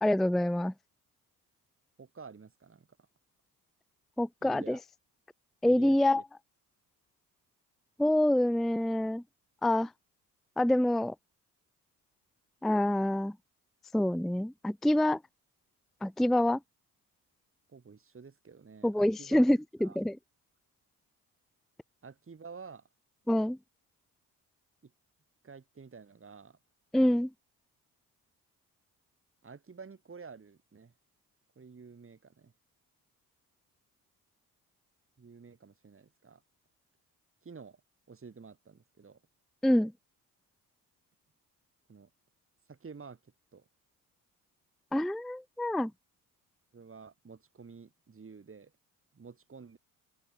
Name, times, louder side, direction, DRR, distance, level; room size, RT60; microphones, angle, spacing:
voice 1, 0.0-0.7 4.2-4.8 5.6-6.2 8.0-9.2 9.6-9.9 10.6-11.1 12.6-13.3 13.9-15.2 16.0-16.6 18.8-20.2 23.3-23.6 26.9-27.3 39.6-39.9 44.9-45.9, left 1 dB, ahead, 0.5 m, -26 dB
voice 2, 2.0-2.9 4.4-4.8 5.7-6.0 17.7-19.5 19.8-20.0 22.0-22.9 24.8-24.9 25.4-26.6 29.4-30.9 31.6-32.5 35.2-36.4 37.4-37.8 38.1-39.2 41.9-42.1 42.7-43.7 46.7-48.7 49.1-49.8, right 5 dB, 30° right, 3.4 m, -50 dB
open air
figure-of-eight pair, 45°, 46 cm